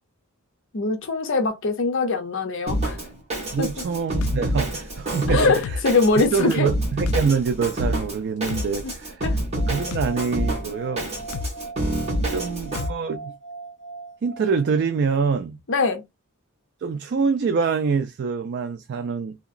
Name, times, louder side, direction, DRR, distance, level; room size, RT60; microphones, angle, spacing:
voice 1, 0.7-3.0 3.6-3.7 5.3-6.7 9.2-9.4 12.1-12.7 15.7-16.0, left 3 dB, 60° left, 0.6 m, -23 dB
Drum kit, 2.7-12.9, right 1 dB, 30° right, 1.3 m, -27 dB
voice 2, 3.5-5.8 6.3-9.2 9.7-11.1 12.3-13.3 14.2-15.6 16.8-19.4, right 5 dB, 50° right, 0.3 m, -25 dB
sound 1, 4.2-4.4 5.6-5.8 7.1-7.3 8.5-8.7 9.9-10.1 11.3-11.5 12.8-13.0, left 4 dB, 85° left, 0.3 m, -29 dB
sound 2, 9.5-15.1, right 3 dB, 30° left, 1.3 m, -40 dB
2.8 x 2.8 x 2.5 m
head